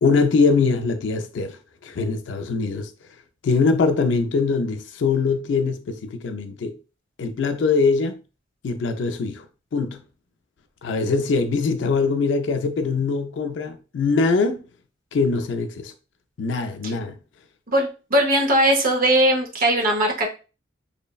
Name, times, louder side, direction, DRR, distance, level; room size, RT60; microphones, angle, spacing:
voice 1, 0.0-2.9 3.4-6.8 7.2-8.2 8.6-9.4 9.7-10.0 10.8-14.6 15.1-15.9 16.4-17.2, left 4 dB, 70° left, 0.4 m, -22 dB
voice 2, 17.7-20.3, right 1 dB, 50° right, 0.7 m, -19 dB
3.1 x 2.1 x 2.2 m
head